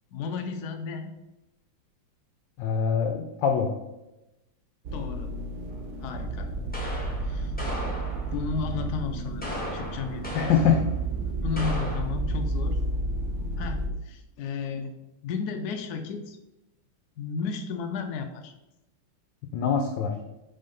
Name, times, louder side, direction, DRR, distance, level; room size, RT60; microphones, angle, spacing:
voice 1, 0.1-1.1 4.9-5.3 6.0-6.5 7.2-7.5 8.3-10.5 11.4-12.8 13.6-14.9 15.2-16.4 17.2-18.5, left 5 dB, 90° left, 5 dB, 0.8 m, -33 dB
voice 2, 2.6-3.7 10.3-10.9 19.5-20.1, left 6 dB, 70° left, 4 dB, 1.2 m, -24 dB
sound 1, 4.8-13.9, right 2 dB, 85° right, 0.6 m, -31 dB
sound 2, 5.7-5.8 6.7-8.5 9.4-10.9 11.6-12.0, left 1 dB, 5° left, 1.1 m, -36 dB
5.6 x 3.8 x 5.2 m, 0.97 s
omnidirectional pair, 2.3 m